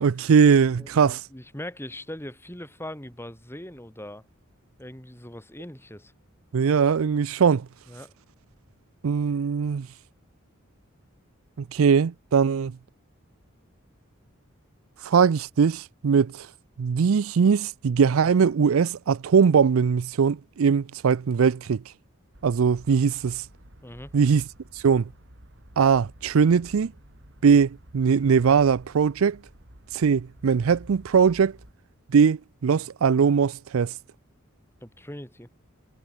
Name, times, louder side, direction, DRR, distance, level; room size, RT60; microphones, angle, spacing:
voice 1, 0.0-1.2 6.5-7.7 9.0-9.9 11.7-12.7 15.0-16.5 16.8-21.8 22.4-23.4 24.1-24.4 24.8-25.0 25.8-26.9 27.4-29.4 29.9-31.5 32.1-33.9, right 6 dB, 80° right, 0.4 m, -20 dB
voice 2, 0.8-4.2 4.8-6.1 7.9-8.1 23.8-24.1 34.8-35.5, left 1 dB, 10° left, 6.1 m, -40 dB
sound 1, 22.3-31.7, right 1 dB, 60° right, 4.6 m, -51 dB
head